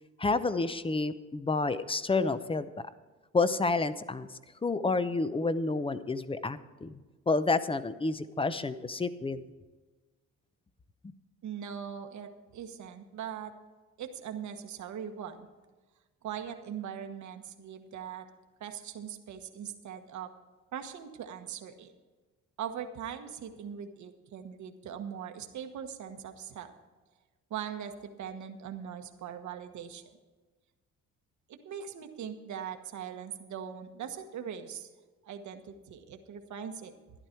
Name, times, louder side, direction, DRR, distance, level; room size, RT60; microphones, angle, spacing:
voice 1, 0.2-2.7 3.3-4.3 4.6-7.0 7.3-9.4, left 3 dB, 20° left, 13 dB, 0.7 m, -29 dB
voice 2, 11.4-13.5 14.0-15.5 16.2-18.3 18.6-20.3 20.7-21.9 22.6-26.7 27.5-30.2 31.5-34.9 35.2-36.9, right 8 dB, 70° right, 6 dB, 1.3 m, -41 dB
12.5 x 11.0 x 4.5 m, 1.3 s
cardioid pair, 90°, 30 cm